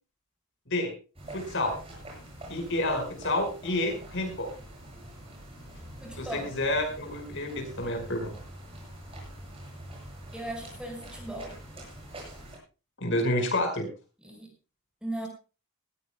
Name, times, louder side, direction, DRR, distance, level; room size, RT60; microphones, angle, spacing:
sound 1, 1.2-12.6, right 1 dB, 25° right, 7.8 m, -45 dB
voice 1, 1.3-1.7 2.5-4.5 6.2-8.3 13.0-13.9, left 1 dB, 55° left, 5 dB, 5.1 m, -29 dB
voice 2, 6.0-6.5 10.3-11.5 14.2-14.5 15.0-15.3, right 1 dB, 5° right, 2 dB, 4.9 m, -37 dB
19.5 x 16.5 x 2.2 m, 0.33 s
head